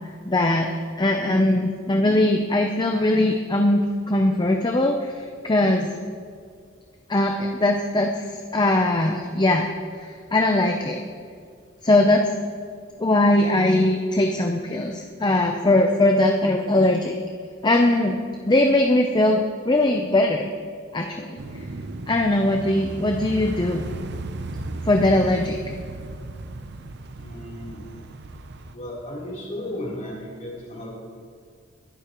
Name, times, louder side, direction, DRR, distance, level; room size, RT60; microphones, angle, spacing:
voice 1, 0.3-5.2 5.4-5.9 7.1-8.2 8.5-9.7 10.0-11.0 11.8-12.2 13.0-17.2 17.6-18.2 18.5-19.4 19.7-20.5 20.9-21.3 22.1-23.8 24.8-25.6, left 1 dB, 20° left, 3 dB, 0.6 m, -20 dB
sound 1, 21.4-28.7, right 2 dB, 55° right, 0.6 m, -35 dB
voice 2, 27.2-27.8 28.7-30.9, left 1 dB, 40° left, -4 dB, 3.6 m, -34 dB
21.0 x 11.5 x 3.1 m, 2.1 s
head